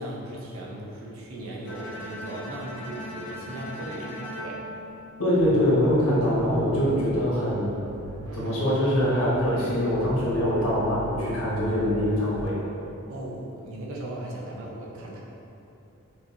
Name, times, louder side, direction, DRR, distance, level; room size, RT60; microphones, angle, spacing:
voice 1, 0.0-4.7 13.1-15.2, right 1 dB, 70° right, -3 dB, 0.7 m, -37 dB
Bowed string instrument, 1.7-5.8, left 1 dB, 55° left, 0.5 m, -39 dB
voice 2, 5.2-7.7 8.3-12.6, equal, 80° left, -7 dB, 1.2 m, -23 dB
sound 1, 5.4-12.5, right 3 dB, 90° right, 0.3 m, -40 dB
6.0 x 2.6 x 2.8 m, 2.9 s
head